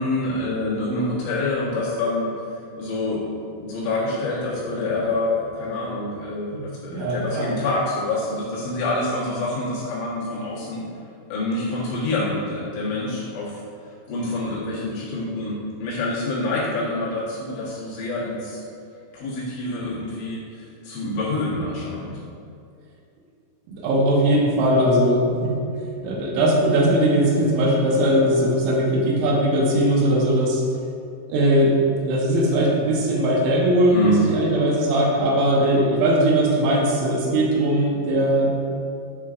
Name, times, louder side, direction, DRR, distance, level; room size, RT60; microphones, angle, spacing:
voice 1, 0.0-2.3 2.8-3.2 3.6-10.8 11.3-13.6 14.1-18.6 19.1-22.2 33.9-34.2, left 2 dB, 70° left, -8 dB, 3.5 m, -26 dB
voice 2, 6.9-7.5 23.7-25.5 26.0-30.6 31.3-31.7 32.0-38.5, right 1 dB, 85° right, -3 dB, 3.6 m, -19 dB
10.5 x 4.8 x 2.5 m, 2.5 s
omnidirectional pair, 5.5 m